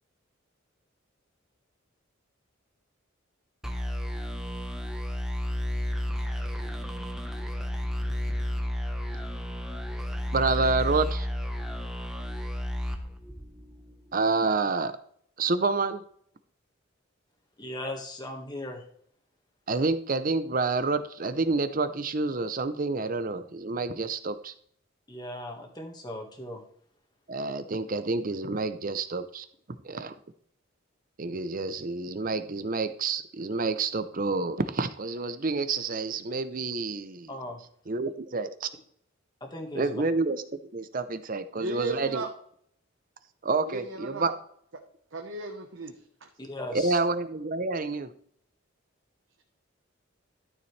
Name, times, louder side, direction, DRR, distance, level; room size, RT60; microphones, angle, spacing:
sound 1, 3.6-13.9, left 1 dB, 5° right, 1.0 m, -32 dB
voice 1, 10.3-11.3 14.1-14.9 15.4-16.0 19.7-24.5 27.3-29.5 29.8-30.1 31.2-37.3 37.9-38.7 39.7-40.4 40.7-42.2 43.4-44.3 46.7-48.1, right 3 dB, 45° right, 12 dB, 0.7 m, -28 dB
voice 2, 17.6-18.8 25.1-26.6 37.3-37.6 39.4-40.0 46.4-47.0, left 1 dB, 20° left, 2 dB, 1.7 m, -38 dB
voice 3, 41.5-42.3 43.7-44.3 45.1-45.9 46.2-46.3, right 3 dB, 70° right, 2 dB, 1.1 m, -35 dB
12.5 x 7.0 x 3.3 m, 0.63 s
head